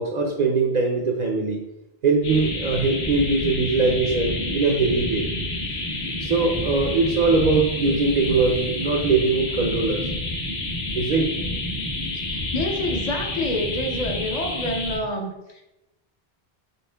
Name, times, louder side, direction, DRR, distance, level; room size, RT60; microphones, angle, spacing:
voice 1, 0.0-1.6 2.0-5.3 6.1-10.0 10.9-11.3, right 3 dB, 55° right, 1 dB, 0.5 m, -21 dB
sound 1, 2.2-15.0, left 1 dB, 85° left, 1.4 m, -29 dB
voice 2, 12.3-15.6, left 1 dB, 50° left, 1 dB, 0.6 m, -28 dB
5.4 x 3.5 x 2.2 m, 0.93 s
omnidirectional pair, 1.0 m